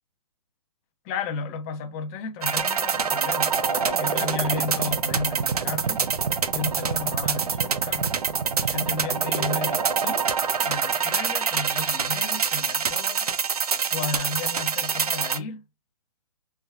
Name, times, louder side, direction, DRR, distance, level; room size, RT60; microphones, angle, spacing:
voice 1, 1.0-6.0 6.5-8.1 8.6-10.3 10.6-13.3 13.9-15.6, left 4 dB, 25° left, 0.5 m, -33 dB
sound 1, 2.4-15.4, right 6 dB, 80° right, 0.5 m, -25 dB
3.3 x 2.2 x 2.2 m
figure-of-eight pair, 125°, 19 cm